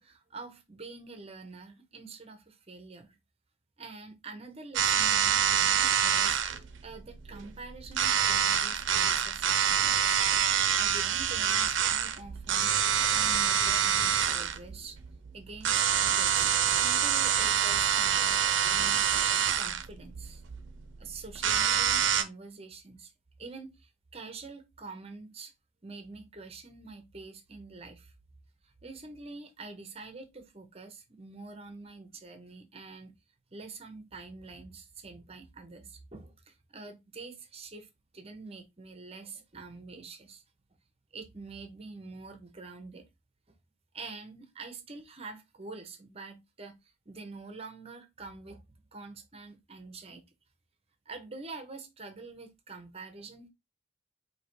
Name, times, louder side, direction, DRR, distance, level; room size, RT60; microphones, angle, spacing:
voice 1, 0.0-3.2 3.8-10.0 10.7-15.0 15.3-19.1 19.6-20.4 21.0-23.1 23.4-25.5 25.8-28.1 28.6-33.1 33.5-40.4 41.1-43.0 43.9-48.6 48.9-50.2 51.1-53.5, right 3 dB, 30° right, 0.8 m, -46 dB
sound 1, 4.7-22.2, right 8 dB, 75° right, 0.6 m, -26 dB
4.7 x 2.8 x 3.1 m
head